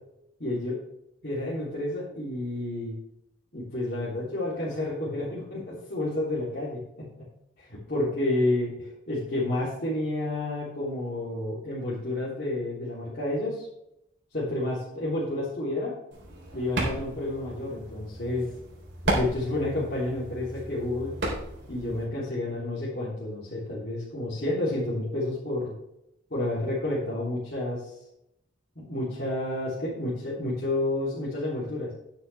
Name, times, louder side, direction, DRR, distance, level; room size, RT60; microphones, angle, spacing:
voice 1, 0.4-0.7 1.2-2.9 3.5-7.1 7.6-13.7 14.3-15.9 16.5-18.5 19.0-21.2 21.7-25.7 26.3-27.9 28.7-31.9, left 1 dB, 50° left, -9 dB, 3.4 m, -30 dB
sound 1, 16.1-22.0, right 1 dB, 65° right, 3.9 m, -34 dB
10.5 x 9.9 x 3.5 m, 0.82 s
head